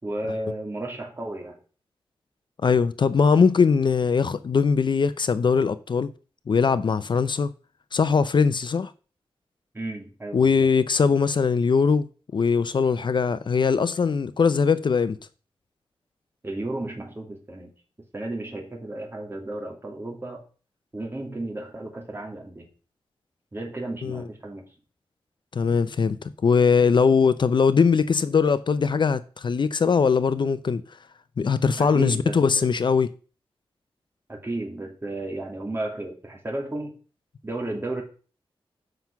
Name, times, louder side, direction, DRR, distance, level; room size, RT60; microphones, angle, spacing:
voice 1, 0.0-1.6 9.7-10.7 16.4-17.7 18.1-20.4 20.9-22.7 23.5-24.6 31.8-32.7 34.3-36.9 37.4-38.0, right 2 dB, 25° right, 2.6 m, -33 dB
voice 2, 2.6-6.1 6.5-7.5 7.9-8.9 10.3-12.1 12.3-15.2 24.0-24.2 25.5-30.8 31.4-33.1, left 5 dB, 55° left, 0.5 m, -21 dB
7.7 x 5.9 x 5.8 m
wide cardioid pair, 105°, 10 cm